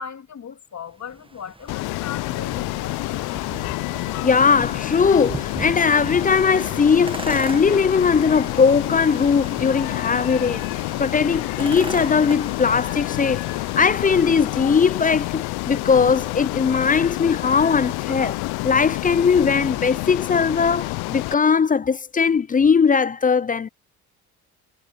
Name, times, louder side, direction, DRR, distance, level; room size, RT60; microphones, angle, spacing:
voice 1, 0.0-2.9, left 7 dB, 35° left, 2.2 m, -37 dB
sound 1, 0.9-14.9, right 3 dB, 10° right, 1.5 m, -39 dB
Ocean, 1.7-21.3, left 22 dB, 60° left, 0.7 m, -28 dB
sound 2, 1.8-19.7, left 27 dB, 75° left, 2.6 m, -38 dB
voice 2, 4.2-13.4 13.8-23.7, left 5 dB, 20° left, 0.5 m, -19 dB
hypercardioid pair, 60°, 45 cm